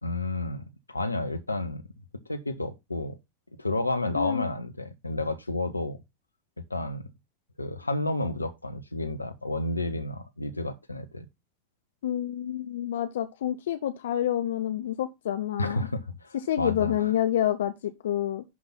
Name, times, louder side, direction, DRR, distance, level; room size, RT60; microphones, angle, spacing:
voice 1, 0.0-1.8 2.3-3.2 3.6-6.0 6.7-7.0 7.6-11.3 15.6-16.9, left 2 dB, 80° left, 1.1 m, -31 dB
voice 2, 4.2-4.5 12.0-15.9 16.5-18.4, left 11 dB, 60° left, 0.7 m, -28 dB
11.0 x 3.9 x 5.7 m
figure-of-eight pair, 90°, 0 cm